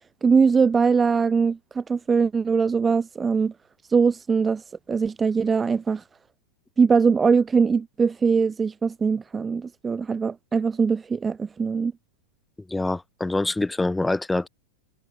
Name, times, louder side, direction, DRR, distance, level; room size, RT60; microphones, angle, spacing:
voice 1, 0.2-3.5 3.9-6.0 6.8-11.9, right 5 dB, 15° right, 1.6 m, -21 dB
voice 2, 12.7-14.5, left 2 dB, 5° left, 5.8 m, -25 dB
supercardioid pair, 135°, 0 cm